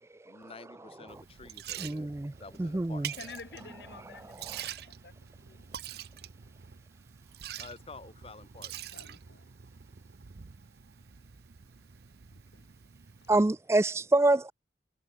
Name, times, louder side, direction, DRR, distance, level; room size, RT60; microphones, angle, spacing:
voice 1, 0.2-2.1 2.4-3.1 7.6-8.7, left 3 dB, 30° left, 0.9 m, -49 dB
Liquid, 1.1-13.4, right 10 dB, 55° right, 0.6 m, -46 dB
voice 2, 1.8-2.3 2.6-3.1 4.5-4.6 13.3-14.5, right 2 dB, 15° right, 0.3 m, -26 dB
voice 3, 3.1-5.6 8.9-9.5 12.3-12.7 13.2-13.3, left 4 dB, 65° left, 1.5 m, -50 dB
head